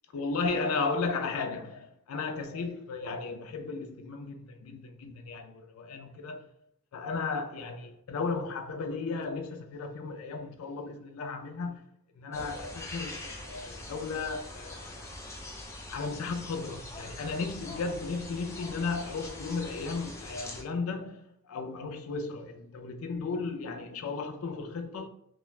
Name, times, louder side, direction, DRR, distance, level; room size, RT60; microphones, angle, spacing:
voice 1, 0.1-6.4 6.9-11.8 12.2-15.2 15.9-21.2 21.5-25.1, left 4 dB, 85° left, 0.4 m, -35 dB
sound 1, 12.3-20.6, left 1 dB, 15° left, 0.3 m, -43 dB
2.4 x 2.2 x 3.0 m
head